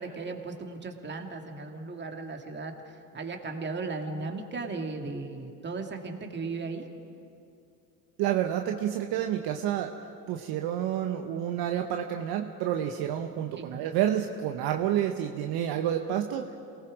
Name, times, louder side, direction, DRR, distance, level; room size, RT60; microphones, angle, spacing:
voice 1, 0.0-6.9 13.6-13.8, right 3 dB, 25° right, 3 dB, 2.4 m, -36 dB
voice 2, 8.2-9.9 10.3-16.5, right 10 dB, 50° right, 4 dB, 1.2 m, -29 dB
27.5 x 19.0 x 5.1 m, 2.6 s
hypercardioid pair, 90°, 47 cm